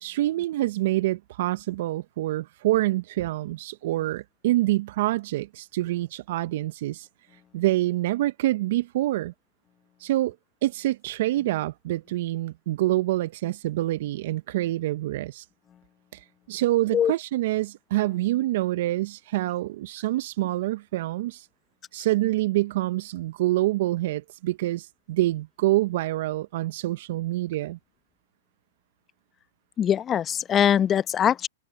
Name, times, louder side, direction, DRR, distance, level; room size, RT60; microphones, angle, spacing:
voice 1, 0.0-7.1 7.5-9.3 10.0-10.3 10.6-15.4 16.1-21.5 21.9-27.8, right 16 dB, 60° right, 1.0 m, -26 dB
voice 2, 29.8-31.5, left 9 dB, 25° left, 0.9 m, -22 dB
hypercardioid pair, 115°, 0 cm